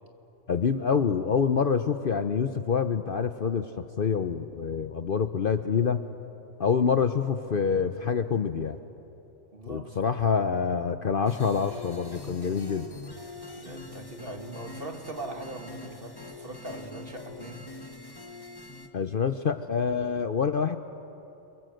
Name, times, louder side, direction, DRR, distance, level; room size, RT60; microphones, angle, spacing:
voice 1, 0.5-6.0 6.6-8.8 9.7-12.9 18.9-20.8, left 6 dB, 50° left, 9 dB, 0.8 m, -26 dB
voice 2, 9.5-10.4 13.5-17.6, right 2 dB, 45° right, 4 dB, 2.2 m, -41 dB
sound 1, 11.3-18.9, left 3 dB, 20° left, 1.3 m, -44 dB
30.0 x 23.5 x 7.8 m, 2.9 s
omnidirectional pair, 1.3 m